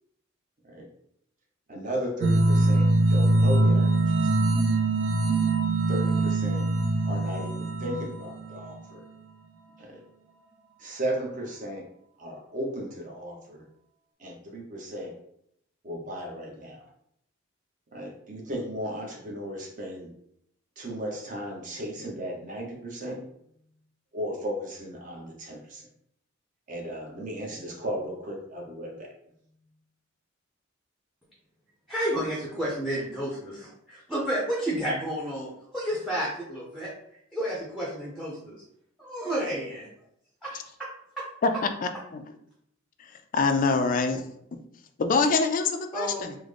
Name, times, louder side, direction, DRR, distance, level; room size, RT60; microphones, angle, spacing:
voice 1, 1.7-4.3 5.9-6.7 7.0-9.0 9.8-10.0 10.8-11.9 12.2-13.6 14.2-15.2 15.8-16.8 17.9-20.1 20.8-23.2 24.1-25.9 26.7-29.1, equal, 40° right, -1 dB, 0.8 m, -35 dB
sound 1, 2.2-8.8, right 2 dB, 65° right, 0.4 m, -23 dB
voice 2, 31.9-36.9 37.3-38.6 39.0-39.9 40.4-40.9 41.2-41.3 45.9-46.4, right 1 dB, ahead, -4 dB, 0.6 m, -31 dB
voice 3, 41.8-42.2 43.3-44.3 45.0-46.3, left 4 dB, 45° left, 7 dB, 0.3 m, -24 dB
3.7 x 2.1 x 3.2 m, 0.72 s
head